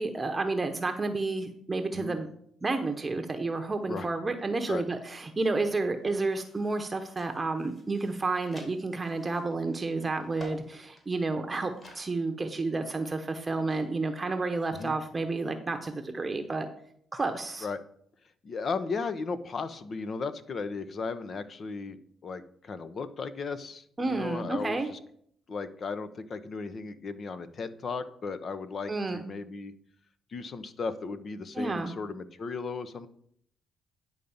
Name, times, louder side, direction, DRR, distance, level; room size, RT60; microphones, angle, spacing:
voice 1, 0.0-2.3 2.6-16.7 17.1-17.7 24.0-24.9 28.9-29.2 31.5-31.9, right 3 dB, 25° right, 6 dB, 0.9 m, -31 dB
sound 1, 5.9-12.1 12.4-12.5 13.3-14.9, left 1 dB, 30° left, 3.7 m, -53 dB
voice 2, 18.4-25.0 25.5-29.7 30.3-33.1, left 4 dB, 50° left, 12 dB, 0.8 m, -36 dB
10.0 x 4.0 x 7.1 m, 0.65 s
cardioid pair, 90°, 0 cm